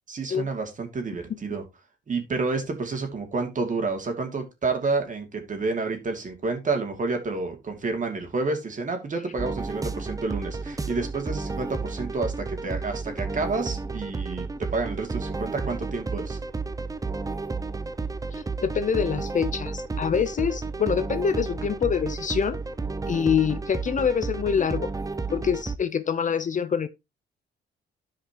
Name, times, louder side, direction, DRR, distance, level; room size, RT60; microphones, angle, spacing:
voice 1, 0.1-1.6 2.1-16.4, right 3 dB, 40° right, 2.3 m, -29 dB
sound 1, 9.4-25.8, right 4 dB, 15° right, 0.6 m, -32 dB
voice 2, 18.3-22.6 23.1-24.9 25.3-26.9, left 7 dB, 40° left, 0.7 m, -25 dB
13.0 x 5.0 x 2.9 m
cardioid pair, 90°, 20 cm